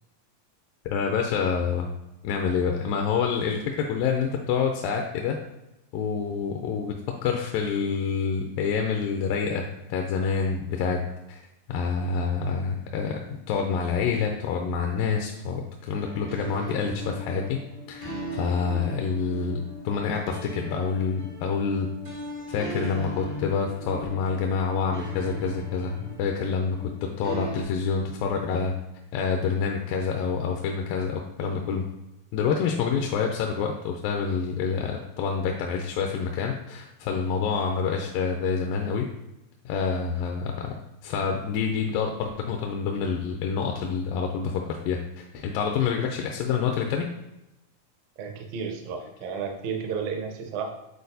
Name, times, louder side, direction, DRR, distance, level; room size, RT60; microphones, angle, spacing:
voice 1, 0.9-1.9 2.2-5.4 5.9-7.0 7.2-11.0 11.3-11.4 11.7-17.6 17.9-21.9 22.5-28.7 29.1-31.8 32.3-39.1 39.7-40.7 41.0-47.1, left 6 dB, 80° left, 2 dB, 2.2 m, -27 dB
Sadnes piano loop, 16.0-27.6, right 1 dB, 45° right, 0.6 m, -38 dB
voice 2, 48.2-50.7, right 6 dB, 75° right, 4 dB, 1.7 m, -32 dB
8.5 x 4.1 x 2.7 m, 0.94 s
omnidirectional pair, 4.1 m